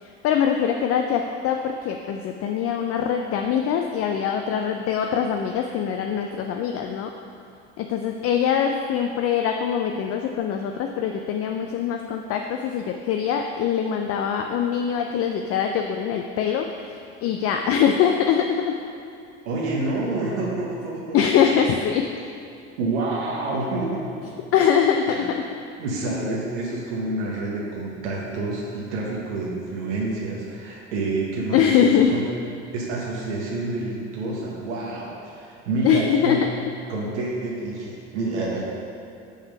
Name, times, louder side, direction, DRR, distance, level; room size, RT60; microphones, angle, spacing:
voice 1, 0.0-7.1 7.8-18.8 21.1-22.1 24.5-25.6 31.5-32.2 35.8-36.5, left 8 dB, 45° left, 4 dB, 0.4 m, -23 dB
voice 2, 19.4-21.7 22.8-24.4 25.1-25.2 25.8-32.2 32.7-36.5 36.9-38.6, right 2 dB, 85° right, -3 dB, 1.0 m, -28 dB
5.4 x 3.7 x 5.0 m, 2.6 s
hypercardioid pair, 75°, 34 cm